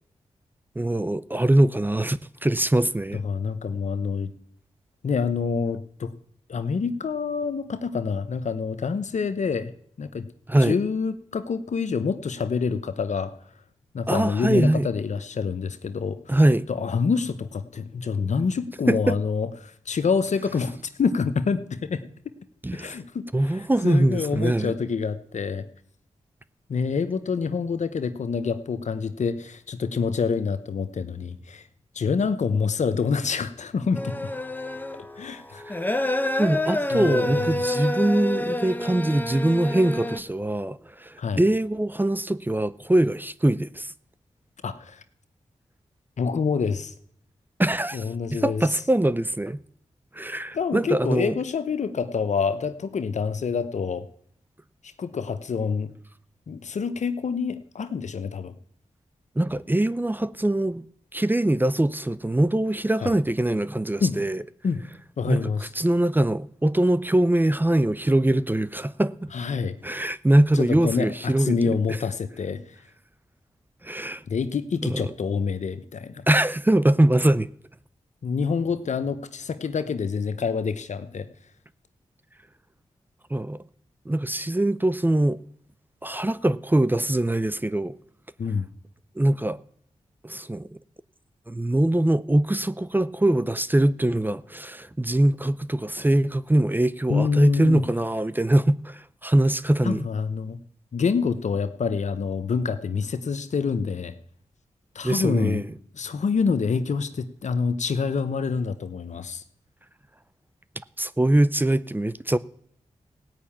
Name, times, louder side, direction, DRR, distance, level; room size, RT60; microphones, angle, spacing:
voice 1, 0.8-3.2 10.5-10.8 14.1-14.9 16.3-16.7 18.9-19.2 22.6-23.0 23.3-24.7 35.7-35.8 36.4-43.9 47.6-49.6 50.1-51.4 59.4-60.8 61.1-64.4 65.3-65.4 65.8-69.1 69.8-71.6 71.9-72.0 73.8-74.2 74.8-75.1 76.3-77.5 83.3-83.6 84.1-85.4 86.0-88.0 89.2-89.6 90.2-90.7 91.5-100.1 105.0-105.6 111.0-112.4, right 1 dB, 15° right, 0.5 m, -22 dB
voice 2, 3.1-4.3 5.0-6.1 6.5-9.7 10.0-10.3 10.6-13.3 13.9-16.4 16.7-22.0 22.7-25.7 26.7-31.6 31.9-34.3 35.2-35.6 36.9-37.6 41.2-41.4 44.6-45.0 46.2-46.9 47.9-48.6 50.5-54.1 55.0-55.9 56.5-58.5 63.0-63.1 64.0-64.2 64.6-64.8 65.2-65.7 69.3-69.8 70.5-72.6 74.3-76.2 78.2-81.3 88.4-88.7 97.1-97.8 99.8-100.6 100.9-104.1 104.9-105.6 105.9-109.4, left 5 dB, 70° left, 0.9 m, -27 dB
sound 1, 33.9-40.2, left 1 dB, 15° left, 0.9 m, -28 dB
16.5 x 5.8 x 8.6 m
cardioid pair, 40°, 13 cm